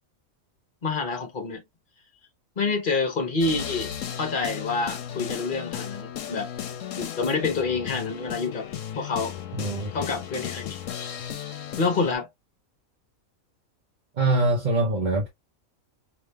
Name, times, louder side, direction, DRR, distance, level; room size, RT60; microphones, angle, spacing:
voice 1, 0.8-1.6 2.6-3.9 4.2-6.5 7.0-8.7 9.0-9.3 9.9-10.8 11.8-12.3, left 4 dB, 40° left, 1.1 m, -27 dB
sound 1, 3.4-12.1, left 9 dB, 70° left, 1.1 m, -35 dB
voice 2, 9.6-9.9 14.2-15.3, right 2 dB, 40° right, 0.8 m, -23 dB
4.9 x 2.9 x 2.3 m
omnidirectional pair, 1.5 m